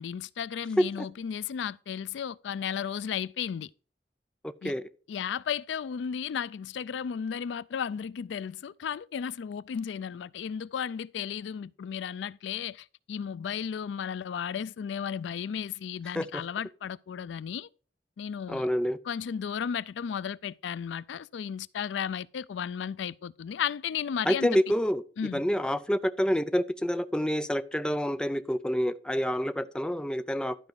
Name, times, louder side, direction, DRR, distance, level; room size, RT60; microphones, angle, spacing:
voice 1, 0.0-3.7 4.6-4.7 5.1-17.7 18.2-18.7 19.1-24.5 25.2-25.4, left 7 dB, 90° left, 0.3 m, -34 dB
voice 2, 4.4-4.8 16.2-16.3 18.5-19.0 24.3-25.0 25.3-30.6, equal, 5° left, 0.5 m, -27 dB
12.0 x 5.2 x 4.7 m
head